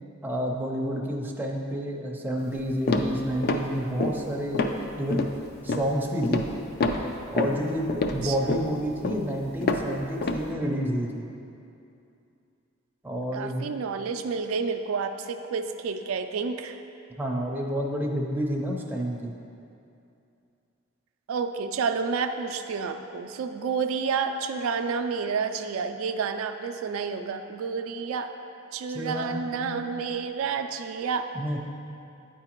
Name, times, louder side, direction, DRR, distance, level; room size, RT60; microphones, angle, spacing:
voice 1, 0.2-5.3 5.6-6.5 7.3-11.2 13.0-13.7 17.2-19.3 28.9-29.8 31.3-31.6, equal, 10° right, -1 dB, 0.5 m, -29 dB
sound 1, 2.4-2.6 2.9-3.7 4.0-4.2 4.5-4.8 5.1-5.4 5.7-5.9 6.2-6.5 6.8-9.9 10.2-10.4, left 2 dB, 50° left, 0.4 m, -27 dB
voice 2, 8.2-8.6 13.3-16.8 21.3-28.3 28.7-31.3, right 5 dB, 75° right, 6 dB, 0.3 m, -30 dB
8.7 x 4.8 x 3.0 m, 2.7 s
head